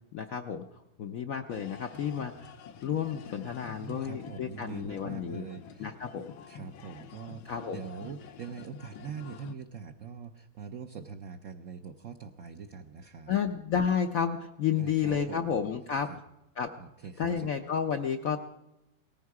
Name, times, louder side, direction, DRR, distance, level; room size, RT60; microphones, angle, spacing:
voice 1, 0.1-0.6 1.0-2.5 2.8-5.5 5.8-6.3 7.5-7.8 13.3-16.1 16.6-16.7 17.2-18.4, left 7 dB, 65° left, 6 dB, 0.8 m, -31 dB
sound 1, 1.5-9.5, left 7 dB, 85° left, 1.7 m, -48 dB
voice 2, 3.6-5.9 6.5-13.4 14.8-15.6 16.1-16.2 16.8-17.5, right 7 dB, 70° right, 4 dB, 0.7 m, -43 dB
18.5 x 15.0 x 4.8 m, 0.92 s
omnidirectional pair, 2.2 m